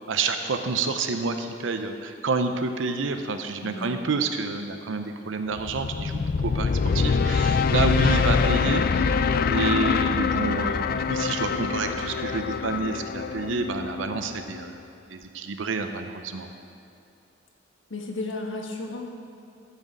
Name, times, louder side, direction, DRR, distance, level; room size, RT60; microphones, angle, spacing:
voice 1, 0.0-9.2 9.5-14.8 15.1-16.5, right 4 dB, 80° right, 7 dB, 0.6 m, -29 dB
voice 2, 3.6-4.0 17.9-19.1, left 2 dB, 90° left, 2 dB, 1.2 m, -33 dB
sound 1, 5.6-14.7, left 5 dB, 50° left, 0.3 m, -24 dB
12.5 x 6.3 x 5.3 m, 2.6 s
head